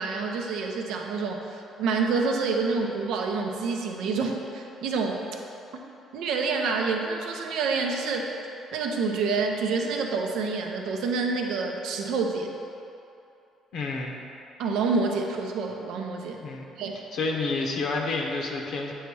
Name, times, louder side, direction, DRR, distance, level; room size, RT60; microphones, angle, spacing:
voice 1, 0.0-5.2 6.1-8.3 8.7-12.5 14.6-16.4 16.8-16.9, right 4 dB, 80° right, 2 dB, 0.6 m, -27 dB
voice 2, 13.7-14.2 16.4-16.6 17.1-18.9, left 3 dB, 70° left, 0 dB, 0.7 m, -29 dB
8.1 x 3.1 x 4.7 m, 2.8 s
cardioid pair, 95°, 0 cm